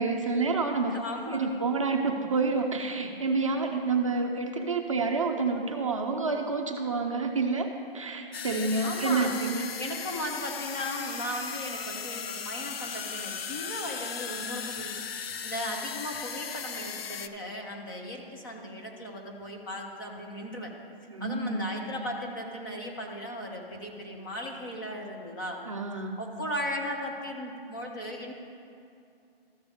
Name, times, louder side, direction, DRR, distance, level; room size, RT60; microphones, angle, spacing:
voice 1, 0.0-1.0 1.3-9.7 21.1-21.7 25.7-26.2, right 4 dB, 35° right, 2 dB, 0.5 m, -28 dB
voice 2, 0.9-1.5 8.8-9.3 9.8-15.0 15.4-20.7 21.2-25.6 26.2-28.3, left 1 dB, 20° left, 1 dB, 0.7 m, -37 dB
sound 1, 8.3-17.3, left 6 dB, 75° left, 0.6 m, -37 dB
13.5 x 6.8 x 3.5 m, 2.5 s
hypercardioid pair, 165°, 30 cm